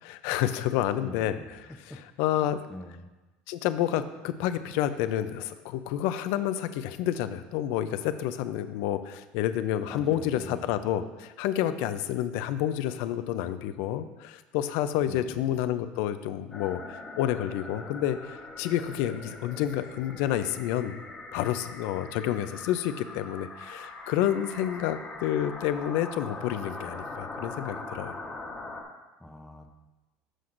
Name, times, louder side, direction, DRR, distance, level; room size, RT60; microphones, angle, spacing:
voice 1, 0.0-1.4 2.2-2.6 3.5-21.0 21.3-28.2, left 11 dB, 70° left, 11 dB, 0.5 m, -29 dB
voice 2, 1.0-1.5 1.9-2.0 2.4-3.1 9.9-10.8 15.1-15.5 29.2-29.7, left 1 dB, 5° left, 4 dB, 0.6 m, -44 dB
sound 1, 16.5-28.8, left 3 dB, 20° left, 1.2 m, -42 dB
11.0 x 6.0 x 2.6 m, 1.1 s
cardioid pair, 140°, 4 cm